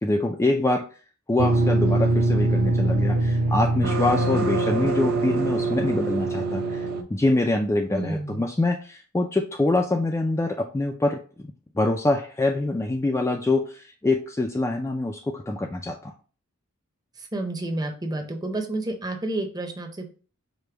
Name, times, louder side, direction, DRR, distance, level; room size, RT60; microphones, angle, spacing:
voice 1, 0.0-0.8 1.3-11.2 11.8-16.1, left 2 dB, 15° left, 3 dB, 0.3 m, -25 dB
sound 1, 1.4-7.0, right 2 dB, 50° right, 0.6 m, -23 dB
voice 2, 7.9-8.4 17.3-20.1, right 2 dB, 20° right, 4 dB, 0.7 m, -30 dB
5.0 x 2.2 x 4.5 m, 0.37 s
head